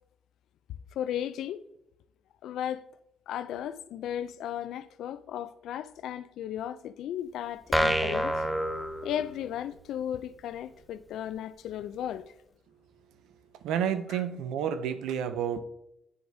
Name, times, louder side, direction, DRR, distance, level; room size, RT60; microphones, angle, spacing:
voice 1, 0.9-1.6 2.4-2.8 3.3-8.4 9.0-12.3 14.1-14.2, left 10 dB, 80° left, 0.3 m, -35 dB
sound 1, 7.7-9.6, equal, 5° left, 0.6 m, -28 dB
voice 2, 13.6-15.6, right 8 dB, 85° right, 0.5 m, -30 dB
9.3 x 4.6 x 2.7 m
cardioid pair, 90°, 0 cm